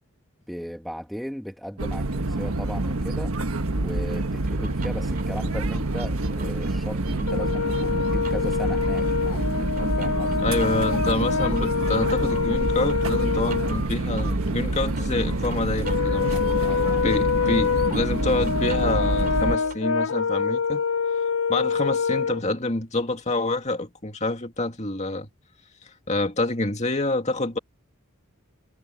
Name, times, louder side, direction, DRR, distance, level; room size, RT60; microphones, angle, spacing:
voice 1, 0.5-3.3 3.8-10.4 16.3-17.1, equal, ahead, 1.2 m, -36 dB
sound 1, 1.8-19.6, right 2 dB, 70° right, 1.4 m, -27 dB
sound 2, 4.4-19.8, right 2 dB, 40° right, 3.4 m, -43 dB
Brass instrument, 7.3-13.7 15.8-22.4, left 6 dB, 60° left, 0.7 m, -26 dB
voice 2, 10.4-16.4 17.0-20.8 21.1-21.2 21.5-25.3 26.1-27.6, left 2 dB, 30° left, 2.4 m, -27 dB
head